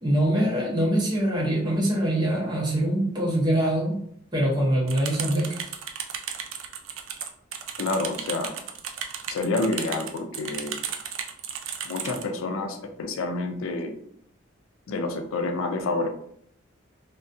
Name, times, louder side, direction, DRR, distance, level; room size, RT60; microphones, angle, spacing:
voice 1, 0.0-4.0 4.3-5.7, right 1 dB, 20° right, -5 dB, 0.7 m, -24 dB
sound 1, 4.9-12.2, right 8 dB, 80° right, 0.3 m, -34 dB
voice 2, 7.8-8.5 9.3-10.8 11.8-13.9 14.9-16.1, left 3 dB, 85° left, 6 dB, 0.4 m, -28 dB
2.3 x 2.2 x 2.6 m, 0.68 s
head